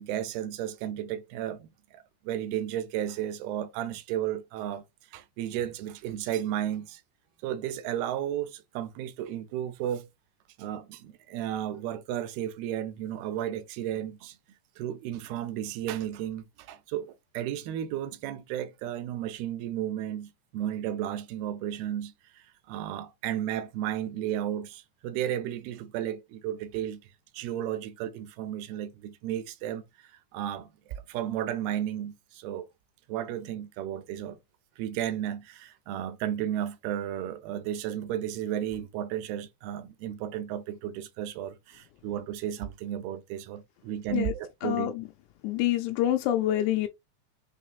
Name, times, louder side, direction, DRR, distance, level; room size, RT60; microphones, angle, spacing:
voice 1, 0.0-4.8 5.1-7.0 7.4-10.1 10.6-14.4 14.8-27.0 27.3-32.7 33.1-34.4 34.8-44.9, right 11 dB, 80° right, 2.3 m, -33 dB
voice 2, 44.6-45.0 45.4-46.9, left 13 dB, 85° left, 2.7 m, -26 dB
6.4 x 3.0 x 2.4 m
omnidirectional pair, 4.7 m